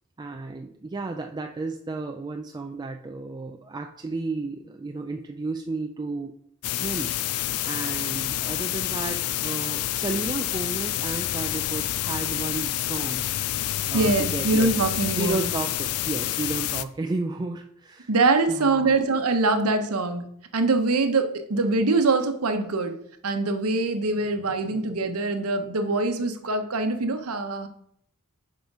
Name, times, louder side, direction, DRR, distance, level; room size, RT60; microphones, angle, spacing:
voice 1, 0.2-6.3 6.7-13.3 13.9-14.7 15.2-18.1 18.5-19.0, right 3 dB, 20° right, 3 dB, 0.3 m, -33 dB
sound 1, 6.6-16.8, left 13 dB, 90° left, 0.4 m, -28 dB
voice 2, 13.7-15.5 18.1-20.2 20.5-22.9 23.2-27.7, right 3 dB, 90° right, 7 dB, 0.9 m, -23 dB
6.4 x 5.0 x 4.8 m, 0.70 s
head